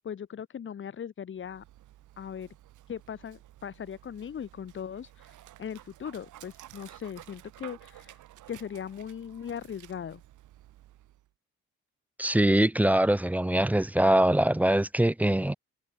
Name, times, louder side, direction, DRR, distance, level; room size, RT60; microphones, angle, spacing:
voice 1, 0.0-1.6 2.2-2.5 2.9-8.2 8.5-10.2, left 8 dB, 40° left, 1.0 m, -39 dB
Dog, 1.3-11.3, right 14 dB, 80° right, 1.7 m, -53 dB
voice 2, 12.2-15.5, right 1 dB, 5° right, 0.4 m, -23 dB
cardioid pair, 90°, 30 cm